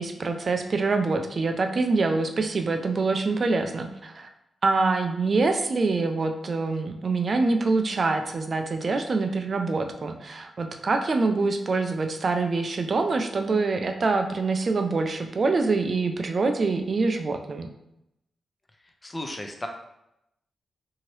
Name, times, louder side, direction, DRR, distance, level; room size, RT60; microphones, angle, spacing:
voice 1, 0.0-4.3 4.6-17.7, right 3 dB, 50° right, 5 dB, 0.3 m, -25 dB
voice 2, 19.0-19.7, left 1 dB, 20° left, 3 dB, 0.5 m, -34 dB
2.8 x 2.7 x 3.0 m, 0.84 s
cardioid pair, 85°, 0 cm